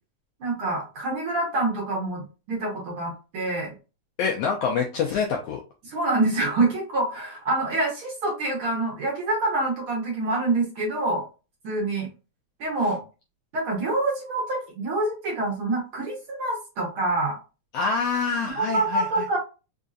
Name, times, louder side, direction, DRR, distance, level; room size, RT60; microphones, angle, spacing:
voice 1, 0.4-3.7 5.8-11.2 11.6-12.1 12.6-13.0 13.5-17.4 18.5-19.4, right 2 dB, 60° right, -1 dB, 1.5 m, -26 dB
voice 2, 4.2-5.6 17.7-19.1, left 5 dB, 80° left, 1 dB, 1.4 m, -26 dB
4.7 x 2.6 x 2.5 m, 0.31 s
omnidirectional pair, 3.4 m